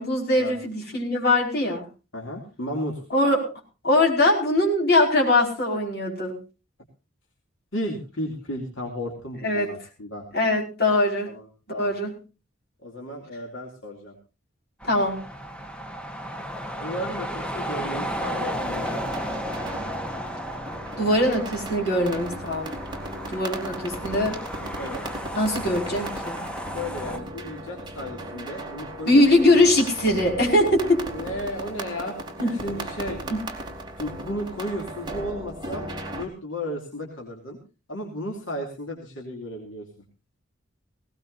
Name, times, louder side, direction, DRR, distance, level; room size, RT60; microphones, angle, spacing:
voice 1, 0.0-1.8 3.1-3.5 3.8-6.4 9.4-9.7 10.3-11.3 11.7-12.2 14.8-15.2 21.0-22.7 23.3-24.4 25.3-26.4 29.1-31.0 32.4-32.5 33.3-33.4, left 1 dB, 55° left, 0 dB, 5.2 m, -21 dB
voice 2, 2.1-3.0 7.7-10.2 11.3-11.9 12.8-14.1 16.8-19.3 22.0-22.2 24.8-25.1 26.7-29.5 31.1-32.2 32.4-33.2 34.0-35.8 36.1-37.6 37.9-39.9, equal, 70° left, 0 dB, 2.8 m, -34 dB
sound 1, 14.8-27.2, equal, 5° left, 1.2 m, -34 dB
sound 2, 18.7-36.2, right 1 dB, 25° right, 3.1 m, -37 dB
19.5 x 18.0 x 2.7 m, 0.31 s
head